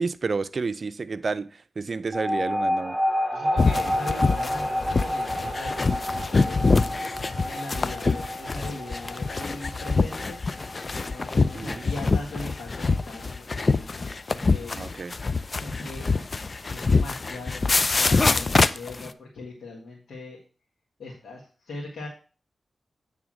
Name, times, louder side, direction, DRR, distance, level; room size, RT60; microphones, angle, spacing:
voice 1, 0.0-3.0 11.5-11.9 14.7-15.2, right 4 dB, 60° right, 0.5 m, -30 dB
sound 1, 2.1-13.0, equal, 10° right, 5.1 m, -30 dB
voice 2, 3.3-10.4 11.0-14.8 15.6-16.3 16.7-20.4 21.0-22.1, left 2 dB, 85° left, 1.7 m, -40 dB
sound 2, 3.6-19.1, left 3 dB, 50° left, 0.5 m, -25 dB
8.8 x 3.6 x 6.2 m
cardioid pair, 45°, 0 cm